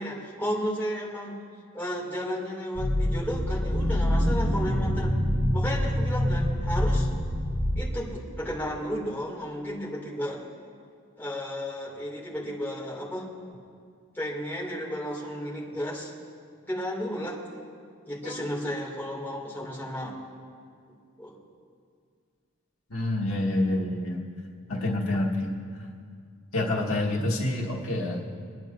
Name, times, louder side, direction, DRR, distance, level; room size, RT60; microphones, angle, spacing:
voice 1, 0.0-1.3 1.7-5.1 5.5-7.1 7.8-10.4 11.2-13.3 14.1-16.1 16.7-17.4 18.1-20.1 21.2-21.3, equal, 10° left, -6 dB, 2.4 m, -33 dB
sound 1, 2.8-7.8, equal, 60° right, 2.3 m, -25 dB
voice 2, 22.9-24.2 24.7-25.5 26.5-28.2, left 1 dB, 70° left, -3 dB, 1.9 m, -27 dB
27.5 x 10.5 x 2.6 m, 2.2 s
head